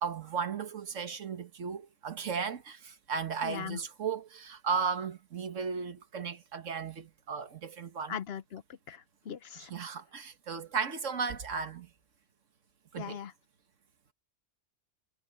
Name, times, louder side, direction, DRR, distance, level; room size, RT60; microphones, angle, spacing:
voice 1, 0.0-8.2 9.6-11.9 12.9-13.2, right 6 dB, 80° right, 1.7 m, -35 dB
voice 2, 3.4-3.8 8.1-8.6 8.9-9.7 12.9-13.3, left 8 dB, 60° left, 0.8 m, -39 dB
omnidirectional pair, 1.3 m